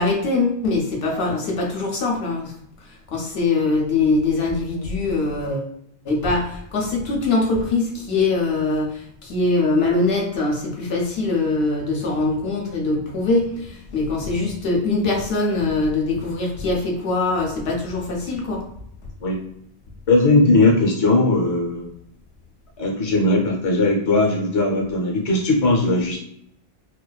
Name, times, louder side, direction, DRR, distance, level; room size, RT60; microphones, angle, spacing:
voice 1, 0.0-2.5 2.9-5.7 6.1-18.6, left 3 dB, 75° left, -1 dB, 0.8 m, -22 dB
voice 2, 20.1-21.9 22.8-26.2, left 2 dB, 40° left, -1 dB, 0.7 m, -18 dB
2.4 x 2.2 x 2.2 m, 0.72 s
omnidirectional pair, 1.1 m